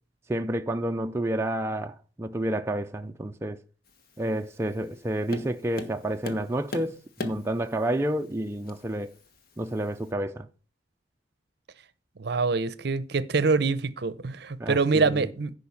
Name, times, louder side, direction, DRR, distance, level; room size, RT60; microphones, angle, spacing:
voice 1, 0.3-3.6 4.2-9.2 9.6-10.5 14.6-15.3, right 1 dB, 15° right, 0.4 m, -30 dB
Tap, 3.9-10.1, left 3 dB, 50° left, 1.2 m, -43 dB
voice 2, 12.2-15.5, right 4 dB, 60° right, 0.6 m, -25 dB
10.5 x 5.1 x 7.1 m
head